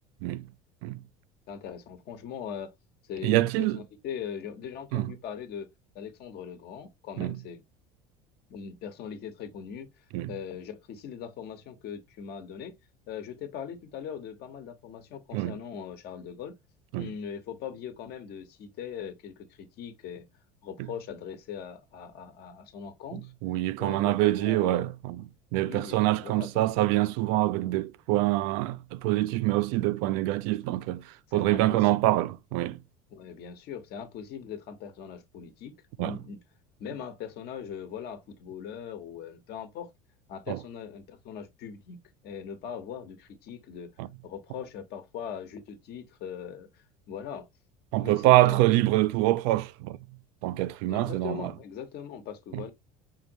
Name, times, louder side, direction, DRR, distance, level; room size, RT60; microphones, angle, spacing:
voice 1, 1.5-2.7 3.1-5.7 5.9-7.6 8.5-12.8 13.1-16.5 17.0-20.2 20.6-23.3 23.8-24.9 25.6-26.7 31.3-32.2 33.1-36.4 36.8-39.9 40.3-42.0 42.2-43.9 44.2-47.5 47.9-48.6 50.9-52.7, left 8 dB, 55° left, 1.1 m, -40 dB
voice 2, 3.2-3.8 4.9-5.1 7.2-7.3 10.1-10.3 15.3-15.5 16.9-17.1 23.4-25.2 25.5-31.0 31.3-32.8 36.0-36.2 40.5-40.6 44.0-44.1 47.9-50.0 50.4-51.4 52.5-52.6, right 17 dB, 75° right, 0.5 m, -25 dB
5.5 x 2.6 x 2.9 m
supercardioid pair, 90°, 19 cm